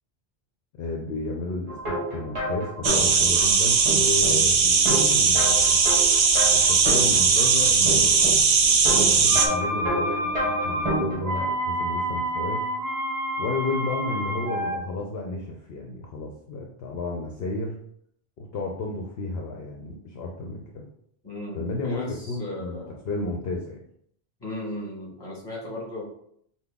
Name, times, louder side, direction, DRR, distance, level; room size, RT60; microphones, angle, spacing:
voice 1, 0.8-5.8 6.5-8.3 8.9-12.6 13.4-17.8 18.4-20.9 21.5-22.8 23.0-23.8, left 2 dB, 70° left, 0 dB, 0.8 m, -32 dB
sound 1, 1.7-11.5, right 1 dB, 30° right, 0.9 m, -31 dB
sound 2, 2.8-9.5, right 5 dB, 50° right, 0.4 m, -19 dB
sound 3, 9.3-14.8, equal, 75° right, 0.8 m, -29 dB
voice 2, 21.2-23.0 24.4-26.0, left 1 dB, 25° left, -4 dB, 1.6 m, -36 dB
5.7 x 2.2 x 3.5 m, 0.69 s
omnidirectional pair, 1.1 m